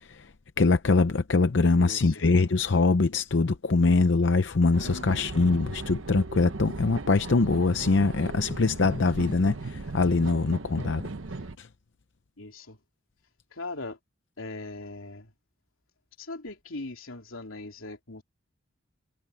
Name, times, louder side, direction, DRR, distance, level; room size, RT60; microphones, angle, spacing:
voice 1, 0.6-11.0 11.6-11.7, left 3 dB, 65° left, 0.6 m, -23 dB
voice 2, 1.8-2.2 4.8-5.3 12.4-12.8 13.5-14.0 14.4-15.3 16.2-18.2, left 2 dB, 90° left, 3.4 m, -40 dB
sound 1, 4.7-11.5, right 3 dB, 80° right, 1.0 m, -37 dB
head